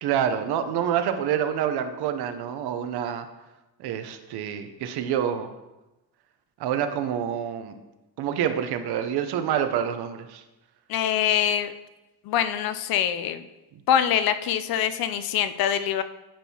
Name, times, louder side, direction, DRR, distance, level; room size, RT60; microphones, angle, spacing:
voice 1, 0.0-3.3 3.8-5.5 6.6-7.8 8.2-10.4 13.7-13.8, right 9 dB, 75° right, 8 dB, 0.7 m, -27 dB
voice 2, 10.9-11.7 12.2-13.5 13.9-16.0, left 9 dB, 65° left, 10 dB, 0.5 m, -24 dB
10.5 x 4.5 x 2.8 m, 1.0 s
cardioid pair, 115°, 40 cm